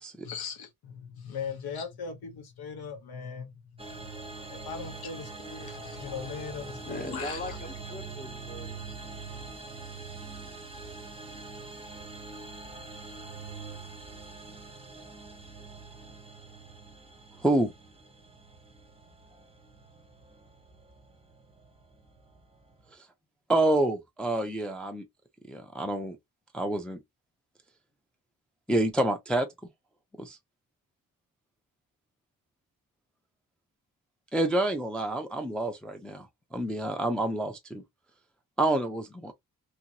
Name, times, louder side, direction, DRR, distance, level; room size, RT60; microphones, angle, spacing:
voice 1, 0.2-3.8 4.5-7.6, left 6 dB, 90° left, 0.9 m, -39 dB
sound 1, 3.8-22.9, right 3 dB, 15° right, 0.7 m, -44 dB
voice 2, 6.8-8.7 13.0-13.2, left 1 dB, 25° left, 0.7 m, -39 dB
voice 3, 23.5-25.0 25.5-26.2 26.5-27.0 28.7-29.5 30.2-30.4 34.3-36.3 36.5-37.8 38.6-39.3, right 1 dB, 5° left, 0.4 m, -28 dB
2.9 x 2.5 x 2.8 m
wide cardioid pair, 155°, 36 cm